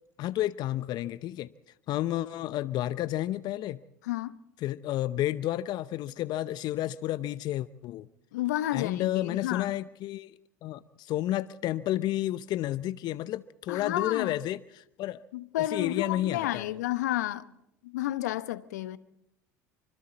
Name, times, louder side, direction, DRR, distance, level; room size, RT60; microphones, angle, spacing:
voice 1, 0.2-1.5 1.9-3.8 4.6-8.1 8.7-10.3 10.6-15.2 15.6-16.7, left 14 dB, 50° left, 0.7 m, -31 dB
voice 2, 4.0-4.4 8.3-9.7 13.7-14.4 15.3-17.5 17.8-19.0, left 14 dB, 75° left, 1.0 m, -31 dB
25.5 x 25.5 x 4.1 m
hypercardioid pair, 75°, 9 cm